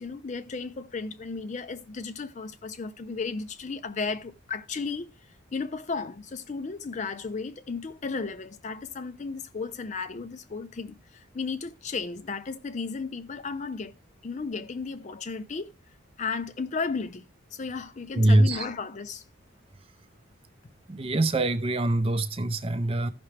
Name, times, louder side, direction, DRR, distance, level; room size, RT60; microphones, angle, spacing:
voice 1, 0.0-13.9 14.2-15.7 16.2-17.2 17.5-19.2, left 4 dB, 35° left, 0.4 m, -34 dB
voice 2, 18.1-18.7 20.9-23.1, right 1 dB, 25° right, 0.5 m, -23 dB
14.0 x 5.9 x 3.2 m
head